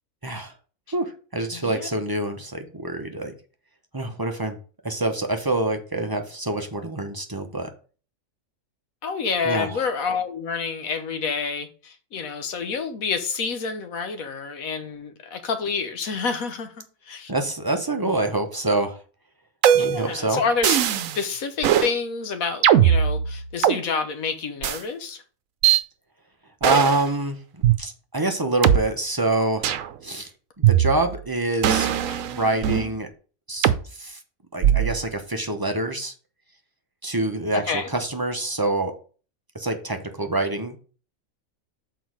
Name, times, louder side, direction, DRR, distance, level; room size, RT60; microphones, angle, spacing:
voice 1, 0.2-0.5 0.9-3.3 3.9-4.6 4.8-7.7 9.4-9.7 17.3-19.0 19.7-20.4 26.6-27.4 27.8-29.7 30.0-30.3 30.6-32.0 32.3-33.1 33.5-34.2 34.5-36.1 37.0-38.9 39.5-40.8, right 2 dB, 20° right, 0.6 m, -26 dB
voice 2, 1.5-1.9 9.0-16.7 17.0-17.3 18.0-18.2 19.7-20.8 21.1-25.2 32.1-32.2 37.5-37.9, left 5 dB, 85° left, 1.4 m, -28 dB
sound 1, 19.6-20.1 20.6-21.2 21.6-21.9 22.6-23.8 24.6-24.8 25.6-25.8 26.6-27.1 27.6-27.7 28.6-28.8 29.6-29.9 30.6-31.2 31.6-32.9 33.6-33.8 34.6-35.0, right 10 dB, 75° right, 1.0 m, -19 dB
6.2 x 4.6 x 4.7 m
omnidirectional pair, 1.4 m